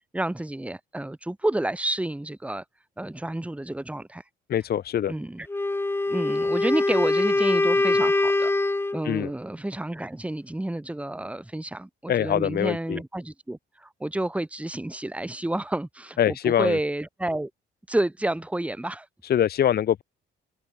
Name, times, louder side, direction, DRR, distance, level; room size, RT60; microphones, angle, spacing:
voice 1, 0.1-2.6 3.0-4.2 5.1-5.5 6.1-8.5 8.9-17.5 17.9-19.1, right 1 dB, 5° right, 1.3 m, -30 dB
voice 2, 4.5-5.1 9.0-9.3 12.1-13.0 16.2-16.8 19.2-20.0, left 10 dB, 50° left, 0.7 m, -23 dB
Wind instrument woodwind instrument, 5.5-9.0, left 2 dB, 10° left, 0.7 m, -23 dB
cardioid pair, 90°, 20 cm